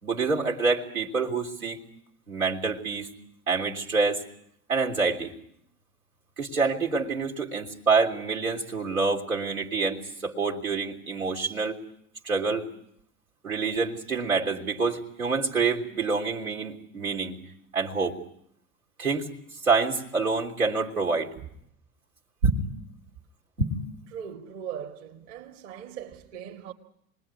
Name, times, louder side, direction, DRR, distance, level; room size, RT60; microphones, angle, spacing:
voice 1, 0.0-1.8 2.3-3.1 3.5-4.2 4.7-5.3 6.4-11.8 12.2-12.7 13.4-17.4 17.7-18.1 19.0-19.3 19.6-21.3 22.4-22.6 23.6-23.8, right 4 dB, 90° right, 3.2 m, -27 dB
voice 2, 24.1-26.7, right 9 dB, 50° right, 2.2 m, -39 dB
27.5 x 20.5 x 9.6 m
figure-of-eight pair, 85°, 41 cm